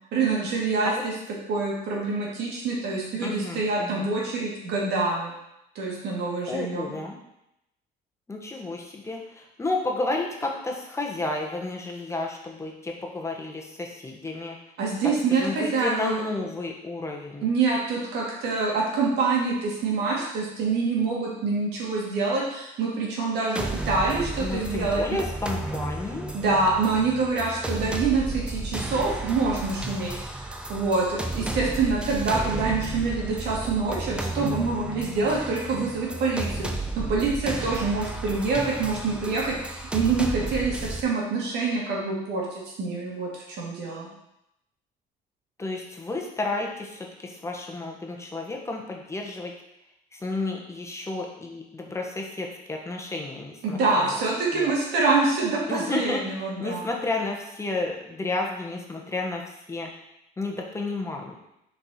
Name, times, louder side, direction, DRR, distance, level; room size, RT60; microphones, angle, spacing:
voice 1, 0.1-1.1 1.5-5.3 5.7-6.9 14.8-16.2 17.4-25.0 26.3-30.1 30.7-36.7 37.0-44.1 53.6-56.9, right 3 dB, 80° right, -3 dB, 2.3 m, -26 dB
voice 2, 3.2-4.1 6.5-7.2 8.3-14.6 15.0-17.5 24.4-26.3 45.6-49.5 50.1-54.2 54.5-54.7 55.7-56.2 56.6-59.9 60.4-61.4, left 2 dB, 15° left, 0 dB, 1.1 m, -32 dB
sound 1, 23.6-41.0, right 2 dB, 5° right, 0.7 m, -33 dB
6.5 x 4.8 x 4.2 m, 0.84 s
cardioid pair, 110°, 17 cm